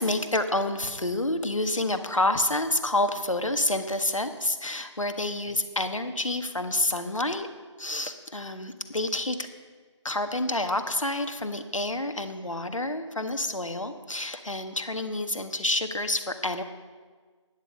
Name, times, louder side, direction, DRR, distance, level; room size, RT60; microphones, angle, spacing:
voice 1, 0.0-7.5 7.8-9.5 10.0-16.6, left 2 dB, 85° left, 8 dB, 1.4 m, -28 dB
16.5 x 10.5 x 5.2 m, 1.5 s
figure-of-eight pair, 155°, 16 cm